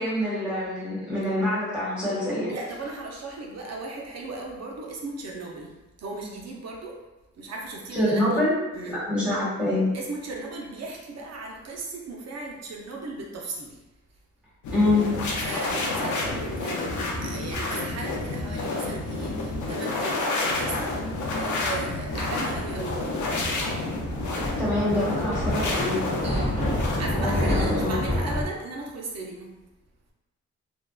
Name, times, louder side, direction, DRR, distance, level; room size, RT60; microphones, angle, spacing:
voice 1, 0.0-2.5 7.9-8.6 8.9-9.9 14.7-15.2 24.6-26.0 27.2-27.9, left 1 dB, 5° right, -10 dB, 1.4 m, -25 dB
voice 2, 2.5-5.7 6.0-6.9 7.4-8.4 8.7-9.0 9.9-13.8 15.4-23.1 26.2-26.5 27.0-29.5, right 2 dB, 60° right, -1 dB, 0.6 m, -36 dB
sound 1, 14.6-28.1, left 2 dB, 85° left, 0.5 m, -29 dB
Thunder, 22.9-28.5, left 1 dB, 25° left, 0.8 m, -29 dB
2.7 x 2.1 x 2.3 m, 1.0 s
cardioid pair, 90°, 29 cm